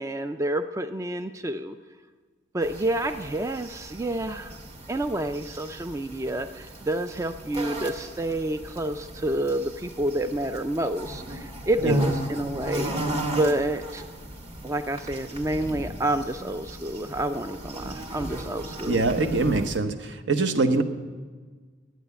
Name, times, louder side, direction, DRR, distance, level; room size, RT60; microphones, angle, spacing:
voice 1, 0.0-1.8 2.5-4.6 4.9-12.9 13.3-14.1 14.6-19.0, right 1 dB, 15° right, 8 dB, 0.3 m, -29 dB
sound 1, 2.6-19.8, right 1 dB, 35° right, 1.6 m, -35 dB
voice 2, 18.9-20.8, right 3 dB, 65° right, 8 dB, 0.9 m, -23 dB
11.0 x 9.2 x 8.1 m, 1.4 s
head